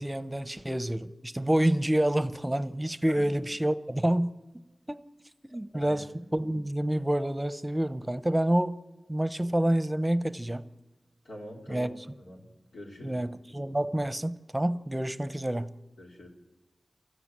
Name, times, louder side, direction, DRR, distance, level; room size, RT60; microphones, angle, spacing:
voice 1, 0.0-4.3 4.9-5.0 5.5-6.1 6.3-8.8 9.1-10.6 11.7-11.9 13.0-15.7, right 1 dB, 15° right, 13 dB, 0.9 m, -28 dB
voice 2, 11.3-11.9 12.2-12.5 12.7-13.2 16.0-16.3, equal, 80° left, -1 dB, 4.0 m, -44 dB
28.5 x 14.5 x 7.6 m, 1.1 s
cardioid pair, 45°, 0 cm